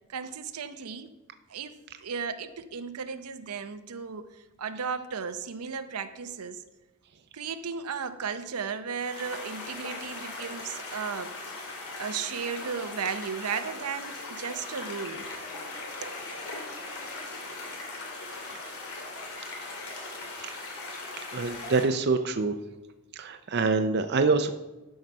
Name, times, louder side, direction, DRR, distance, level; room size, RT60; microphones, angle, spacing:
voice 1, 0.1-1.1 1.5-6.6 7.3-15.2 16.0-16.2, right 6 dB, 85° right, 10 dB, 0.7 m, -35 dB
sound 1, 8.9-21.8, left 3 dB, 85° left, 2.3 m, -39 dB
voice 2, 21.3-22.6 23.2-24.5, right 4 dB, 50° right, 8 dB, 0.5 m, -25 dB
12.0 x 4.8 x 5.4 m, 1.1 s
head